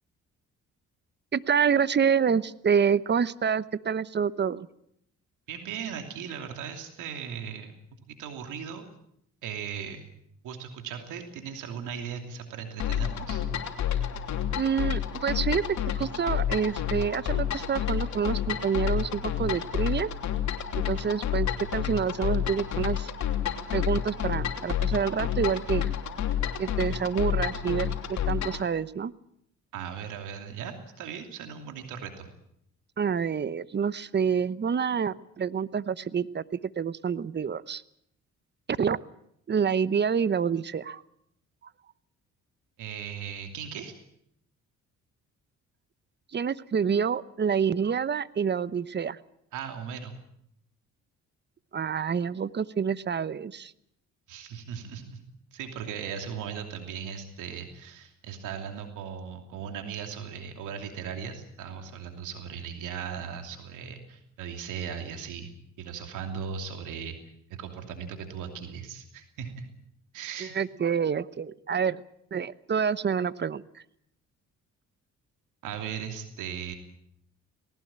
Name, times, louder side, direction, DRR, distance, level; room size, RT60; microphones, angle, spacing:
voice 1, 1.3-4.7 14.6-15.6 16.0-20.1 20.7-23.1 23.7-25.9 26.6-29.1 33.0-36.4 36.8-37.8 38.7-39.0 39.5-41.0 46.3-49.2 51.7-53.7 70.4-72.0 72.3-73.8, right 7 dB, 35° right, 17 dB, 0.9 m, -27 dB
voice 2, 5.5-8.8 9.4-10.0 10.4-13.4 29.7-32.3 42.8-44.0 49.5-50.2 54.3-55.2 55.5-67.2 67.5-69.7 70.1-70.5 75.6-76.7, right 7 dB, 85° right, 5 dB, 2.9 m, -38 dB
sound 1, 12.8-28.7, left 10 dB, 65° left, 3.0 m, -30 dB
20.0 x 18.5 x 8.8 m, 0.72 s
cardioid pair, 90°, 30 cm